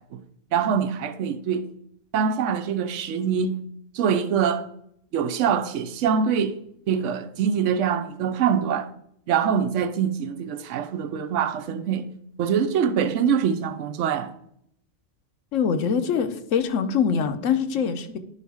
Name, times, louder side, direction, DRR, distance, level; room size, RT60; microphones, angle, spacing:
voice 1, 0.5-1.7 2.1-3.6 3.9-4.6 5.1-6.5 6.9-8.9 9.3-12.1 12.4-14.3, right 7 dB, 80° right, 1.0 m, -24 dB
voice 2, 15.5-18.2, left 7 dB, 90° left, 1.1 m, -24 dB
10.5 x 4.1 x 4.8 m
omnidirectional pair, 1.3 m